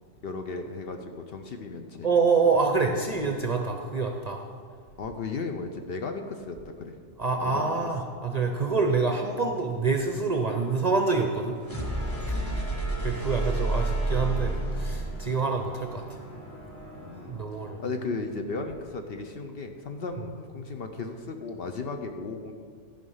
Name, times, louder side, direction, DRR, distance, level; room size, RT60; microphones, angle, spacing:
voice 1, 0.2-2.1 2.5-2.6 5.0-6.9 7.4-7.7 12.3-12.7 15.3-15.4 17.0-17.4 17.8-22.5, left 4 dB, 55° left, 5 dB, 0.8 m, -35 dB
voice 2, 2.0-4.4 7.2-11.6 12.3-16.0 17.3-17.8, right 4 dB, 45° right, 3 dB, 0.6 m, -26 dB
sound 1, 11.6-17.4, right 2 dB, 10° left, 1.4 m, -31 dB
13.0 x 5.3 x 5.5 m, 2.1 s
omnidirectional pair, 1.3 m